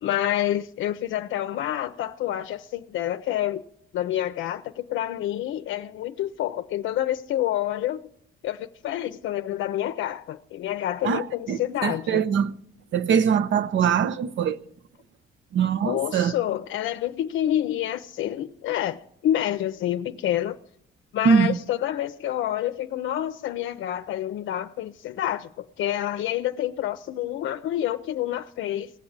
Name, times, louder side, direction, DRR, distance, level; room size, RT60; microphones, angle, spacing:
voice 1, 0.0-3.6 3.9-8.0 8.4-12.2 15.8-20.6 21.1-28.9, left 12 dB, 75° left, 0.6 m, -28 dB
voice 2, 11.0-12.5 12.9-14.6 15.5-16.3 21.2-21.6, right 7 dB, 70° right, 0.8 m, -22 dB
18.5 x 7.2 x 8.0 m
cardioid pair, 90°, 20 cm